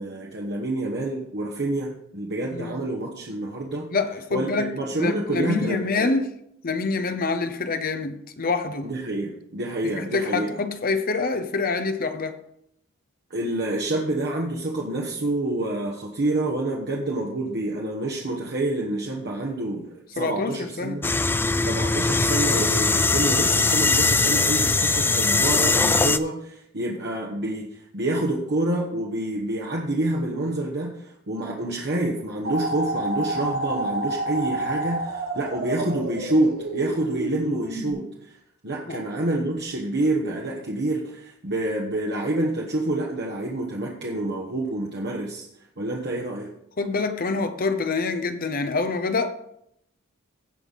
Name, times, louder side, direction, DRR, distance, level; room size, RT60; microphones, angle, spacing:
voice 1, 0.0-3.9 4.3-6.1 8.8-10.5 13.3-19.9 20.1-21.1 21.6-38.4 38.6-45.5 45.8-46.5, right 2 dB, 55° right, 1.3 m, -27 dB
voice 2, 3.9-6.3 6.6-8.9 9.8-12.4 20.2-21.0 38.9-39.0 46.8-49.3, left 3 dB, 45° left, 0.8 m, -26 dB
sound 1, 21.0-26.2, left 3 dB, 10° left, 0.3 m, -21 dB
sound 2, 32.4-37.9, right 1 dB, 80° right, 4.5 m, -29 dB
16.5 x 5.6 x 4.1 m
head